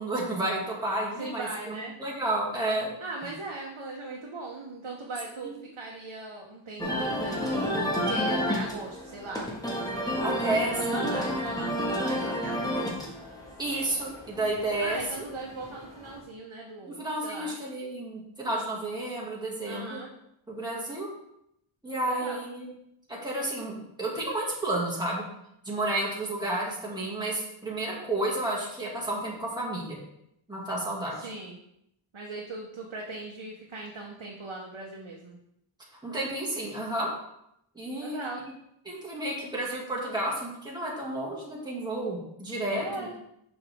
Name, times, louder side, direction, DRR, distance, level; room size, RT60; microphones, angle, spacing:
voice 1, 0.0-2.9 10.2-10.7 13.6-15.0 17.0-20.0 20.5-21.1 21.8-22.7 23.1-25.2 25.6-30.0 30.5-31.2 36.0-37.1 37.7-38.2 38.9-43.2, right 1 dB, 10° right, -5 dB, 2.0 m, -31 dB
voice 2, 1.2-1.9 3.0-9.5 10.3-13.0 14.8-17.6 19.6-20.1 22.0-22.5 31.2-31.6 32.1-35.4 38.0-38.5 42.8-43.1, right 2 dB, 70° right, -1 dB, 0.9 m, -39 dB
sound 1, 6.8-16.2, equal, 10° left, 1.5 m, -31 dB
6.1 x 5.6 x 3.5 m, 0.78 s
wide cardioid pair, 45°, 48 cm